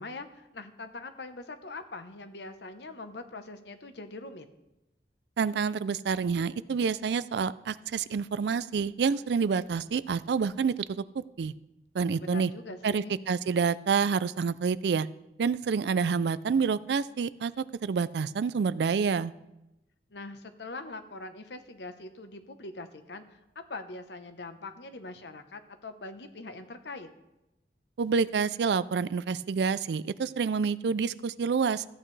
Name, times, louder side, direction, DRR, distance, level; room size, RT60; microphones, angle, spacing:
voice 1, 0.0-4.5 12.2-13.1 20.1-27.1, left 3 dB, 75° left, 8 dB, 0.9 m, -42 dB
voice 2, 5.4-11.5 11.9-12.5 12.8-15.1 15.4-19.3 28.0-31.8, right 5 dB, 75° right, 17 dB, 0.4 m, -28 dB
14.5 x 8.7 x 3.3 m, 0.95 s
head